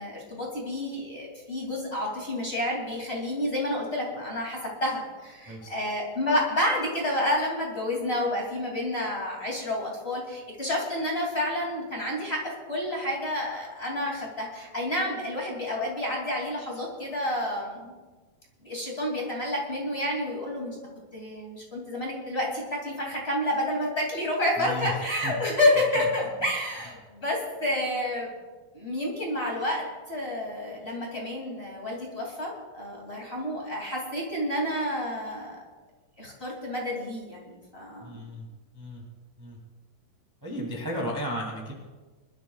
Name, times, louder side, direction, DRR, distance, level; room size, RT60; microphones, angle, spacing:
voice 1, 0.0-17.9 18.6-20.8 21.1-28.3 28.7-35.6 36.2-38.2, left 1 dB, 20° left, -2 dB, 2.1 m, -29 dB
voice 2, 5.5-5.8 24.6-24.9 25.2-25.3 38.0-38.5 38.7-39.0 39.4-39.6 40.4-41.7, equal, 10° right, -1 dB, 1.0 m, -34 dB
25.0 x 12.5 x 2.3 m, 1.3 s
omnidirectional pair, 4.5 m